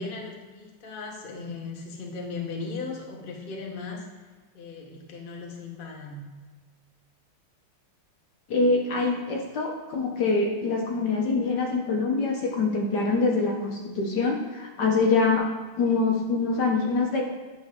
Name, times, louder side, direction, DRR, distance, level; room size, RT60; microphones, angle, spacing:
voice 1, 0.0-4.0 4.5-6.2, left 4 dB, 40° left, 0 dB, 0.8 m, -37 dB
voice 2, 8.5-15.5 15.8-17.2, left 3 dB, 60° left, 0 dB, 1.2 m, -24 dB
9.1 x 6.3 x 3.5 m, 1.3 s
omnidirectional pair, 2.4 m